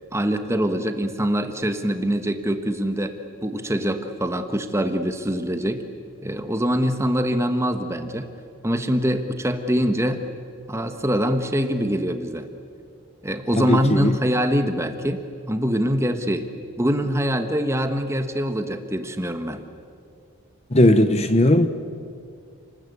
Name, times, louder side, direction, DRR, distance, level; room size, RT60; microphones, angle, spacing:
voice 1, 0.1-3.2 3.4-5.8 6.2-8.3 8.6-10.2 10.7-12.5 13.2-16.5 16.8-19.6, equal, 10° right, 8 dB, 1.3 m, -24 dB
voice 2, 13.6-14.1 20.7-21.7, left 1 dB, 30° left, 10 dB, 0.9 m, -17 dB
29.0 x 20.0 x 8.4 m, 2.3 s
head